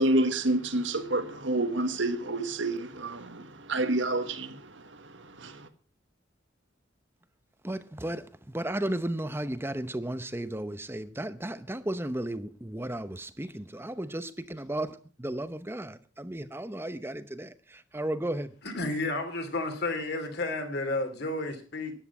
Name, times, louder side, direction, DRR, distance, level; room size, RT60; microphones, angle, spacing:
voice 1, 0.0-5.7, right 2 dB, 65° right, 1.6 m, -29 dB
voice 2, 7.6-18.5, right 1 dB, 10° right, 0.8 m, -34 dB
voice 3, 18.6-21.9, left 2 dB, 55° left, 2.9 m, -31 dB
13.0 x 10.5 x 6.0 m
head